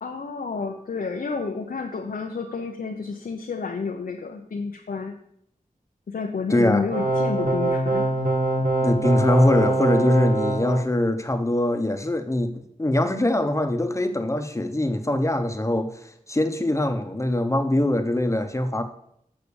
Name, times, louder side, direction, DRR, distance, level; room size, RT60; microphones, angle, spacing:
voice 1, 0.0-5.1 6.1-8.1, left 4 dB, 85° left, 2 dB, 0.7 m, -30 dB
voice 2, 6.5-6.9 8.8-12.5 12.8-15.9 16.3-18.8, left 1 dB, 20° left, 7 dB, 0.9 m, -22 dB
sound 1, 6.9-10.8, right 2 dB, 65° right, 2.2 m, -23 dB
6.7 x 6.0 x 7.0 m, 0.71 s
wide cardioid pair, 65°, 15 cm